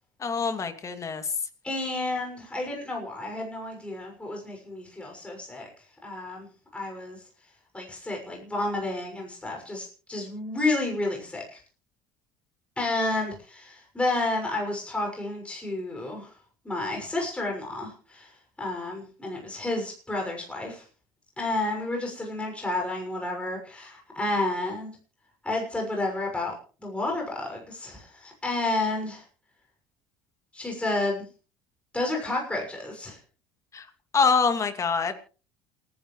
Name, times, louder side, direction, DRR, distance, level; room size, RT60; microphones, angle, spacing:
voice 1, 0.2-1.3 33.7-33.8 34.1-35.1, left 5 dB, 35° left, 8 dB, 2.6 m, -25 dB
voice 2, 1.6-5.7 6.0-6.5 6.7-7.2 7.7-11.6 12.8-16.3 16.6-20.8 21.4-24.9 25.4-29.2 30.5-31.3 31.9-33.2, left 2 dB, 10° left, 0 dB, 6.3 m, -31 dB
28.0 x 10.5 x 3.3 m, 0.37 s
hypercardioid pair, 75°, 9 cm